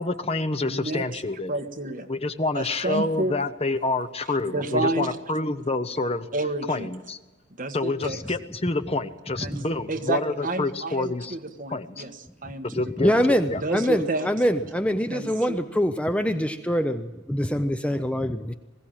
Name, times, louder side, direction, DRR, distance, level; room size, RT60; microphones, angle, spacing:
voice 1, 0.0-1.5 2.1-6.3 6.7-7.2 7.7-11.4 11.7-12.0 12.7-13.6, left 2 dB, 30° left, 11 dB, 0.9 m, -28 dB
voice 2, 0.6-1.0 1.5-2.1 2.5-3.3 4.5-5.1 6.3-6.9 7.6-8.2 9.4-9.6 9.9-12.1 12.4-13.1 13.6-14.3 15.1-15.6, right 2 dB, 45° right, 6 dB, 1.4 m, -29 dB
voice 3, 13.0-18.5, equal, 5° left, 8 dB, 0.6 m, -24 dB
21.0 x 16.5 x 8.9 m, 1.2 s
head